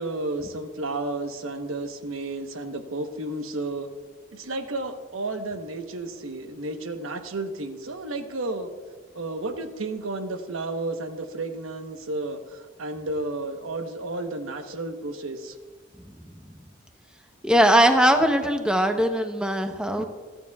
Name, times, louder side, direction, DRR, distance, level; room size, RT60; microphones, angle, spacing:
voice 1, 0.0-3.9 4.3-8.7 9.1-15.6, right 2 dB, 90° right, 6 dB, 1.1 m, -32 dB
voice 2, 17.4-20.0, equal, 5° right, 5 dB, 0.8 m, -20 dB
27.5 x 9.2 x 2.4 m, 1.5 s
head